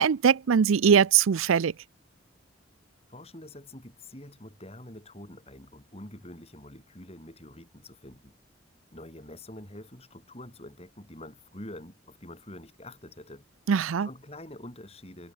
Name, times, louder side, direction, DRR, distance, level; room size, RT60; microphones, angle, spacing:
voice 1, 0.0-1.7 13.7-14.1, right 7 dB, 85° right, 0.5 m, -21 dB
voice 2, 3.1-8.3 8.9-13.4 14.0-15.3, left 1 dB, 30° left, 5.3 m, -46 dB
head